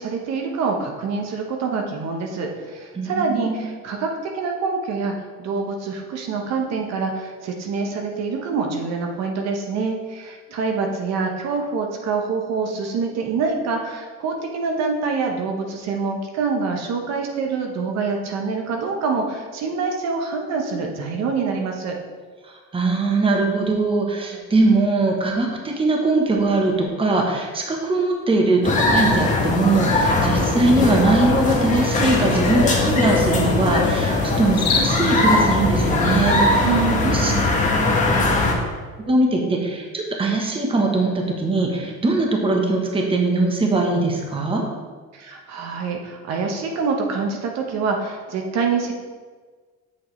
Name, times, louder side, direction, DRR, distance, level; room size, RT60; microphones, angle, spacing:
voice 1, 0.0-5.1 5.4-21.9 36.6-37.5 45.1-48.9, right 4 dB, 60° right, 2 dB, 1.0 m, -25 dB
voice 2, 2.9-3.6 22.7-36.4 37.0-37.3 39.1-44.6, right 2 dB, 20° right, 1 dB, 1.1 m, -21 dB
sound 1, 27.3-44.3, left 5 dB, 60° left, 1.2 m, -37 dB
sound 2, 28.6-38.5, left 2 dB, 25° left, 1.2 m, -20 dB
7.7 x 6.4 x 3.2 m, 1.4 s
cardioid pair, 130°, 29 cm